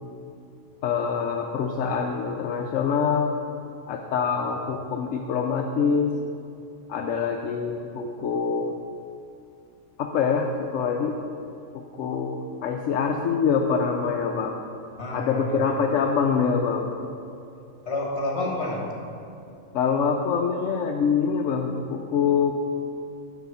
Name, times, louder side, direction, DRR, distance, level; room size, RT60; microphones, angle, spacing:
voice 1, 0.8-3.3 3.9-6.1 6.9-8.7 10.0-11.2 11.7-14.6 15.1-16.9 19.7-22.5, left 6 dB, 75° left, 2 dB, 1.0 m, -25 dB
voice 2, 15.0-15.8 17.9-18.8, left 2 dB, 55° left, -2 dB, 1.9 m, -30 dB
9.7 x 4.1 x 7.1 m, 2.6 s
omnidirectional pair, 1.4 m